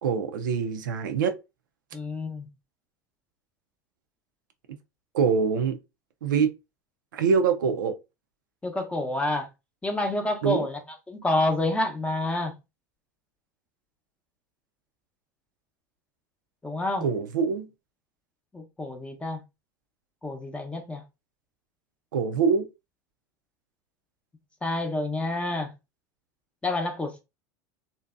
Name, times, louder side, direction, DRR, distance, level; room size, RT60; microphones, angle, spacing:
voice 1, 0.0-1.3 5.1-5.8 6.2-6.5 7.1-8.0 10.4-10.7 17.0-17.7 22.1-22.7, right 6 dB, 85° right, 0.4 m, -24 dB
voice 2, 1.9-2.5 8.6-9.5 9.8-10.8 11.1-12.5 16.6-17.1 18.5-19.4 20.2-21.0 24.6-25.7 26.6-27.2, left 2 dB, 10° left, 0.6 m, -28 dB
2.6 x 2.1 x 2.3 m
hypercardioid pair, 90°, 10 cm